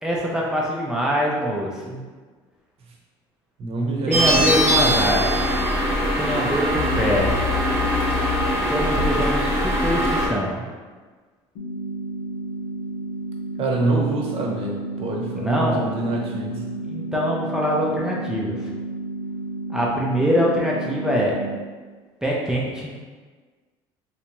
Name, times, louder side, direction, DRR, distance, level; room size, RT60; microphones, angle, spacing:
voice 1, 0.0-2.0 4.1-5.3 6.2-7.4 8.7-10.6 15.3-15.9 16.9-18.7 19.7-21.4 22.2-22.9, equal, 5° right, -4 dB, 0.5 m, -24 dB
voice 2, 3.6-4.5 13.6-16.6, right 2 dB, 55° right, -1 dB, 0.8 m, -26 dB
sound 1, 4.1-10.3, equal, 20° right, 1.0 m, -22 dB
sound 2, 4.8-6.2 6.7-10.2, left 5 dB, 50° left, 0.6 m, -29 dB
sound 3, 11.6-21.6, right 2 dB, 90° left, 0.7 m, -32 dB
3.3 x 2.7 x 3.0 m, 1.4 s
supercardioid pair, 95°, 12 cm